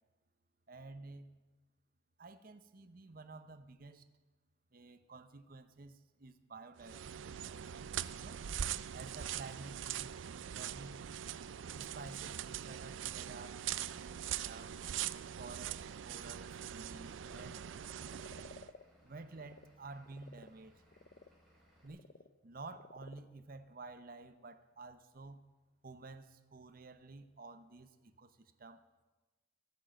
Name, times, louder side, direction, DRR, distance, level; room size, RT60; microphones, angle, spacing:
voice 1, 0.7-1.4 2.2-4.1 4.7-7.6 8.1-8.4 8.9-10.2 10.5-11.0 11.7-14.0 14.4-14.8 15.4-17.6 19.0-20.8 21.8-22.1 22.4-25.5 25.8-29.0, right 3 dB, 50° right, 10 dB, 0.8 m, -52 dB
sound 1, 6.8-18.7, right 10 dB, 75° right, 0.4 m, -42 dB
Frog, 7.1-19.7 20.0-24.7, left 3 dB, 50° left, 0.7 m, -62 dB
Vehicle / Engine, 13.9-21.9, equal, ahead, 4.3 m, -68 dB
14.0 x 9.2 x 7.7 m, 1.2 s
head